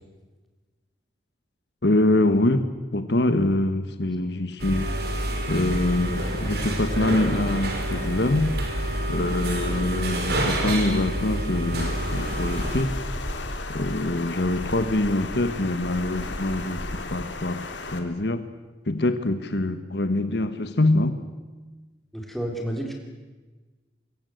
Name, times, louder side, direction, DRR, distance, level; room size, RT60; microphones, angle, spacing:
voice 1, 1.8-4.9 5.5-8.6 9.1-13.0 13.7-18.5 18.8-21.2, left 1 dB, 65° left, 1.4 m, -24 dB
sound 1, 4.6-12.8, right 1 dB, 60° right, 5.0 m, -28 dB
Water, 11.8-18.0, left 2 dB, 85° left, 3.0 m, -34 dB
voice 2, 22.1-22.9, right 1 dB, ahead, 4.1 m, -30 dB
25.0 x 22.5 x 8.0 m
head